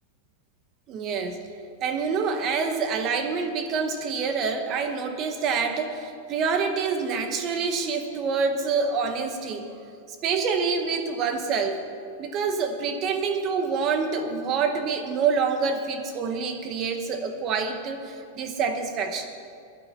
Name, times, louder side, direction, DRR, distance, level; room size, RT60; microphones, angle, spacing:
voice 1, 0.9-1.4 1.8-9.7 10.2-11.8 12.2-19.3, right 5 dB, 25° right, 6 dB, 1.0 m, -27 dB
17.5 x 12.0 x 4.4 m, 2.4 s
supercardioid pair, 180°, 0 cm